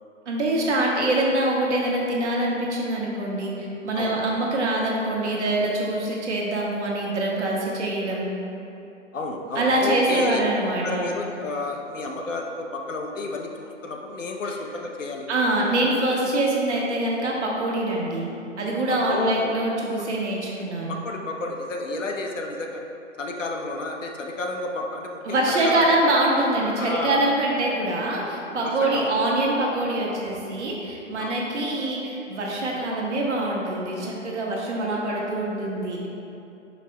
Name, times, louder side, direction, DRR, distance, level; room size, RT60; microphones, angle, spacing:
voice 1, 0.2-8.3 9.5-11.1 15.3-18.3 18.6-21.0 25.2-36.1, right 1 dB, 65° right, -3 dB, 1.4 m, -24 dB
voice 2, 9.1-10.4 10.8-15.3 16.1-16.2 19.1-19.5 20.0-20.1 20.9-22.8 23.2-26.0 26.7-27.3 28.6-29.1 31.2-31.4, left 3 dB, 85° left, 1 dB, 0.9 m, -31 dB
11.5 x 5.4 x 2.3 m, 2.9 s
figure-of-eight pair, 125°, 37 cm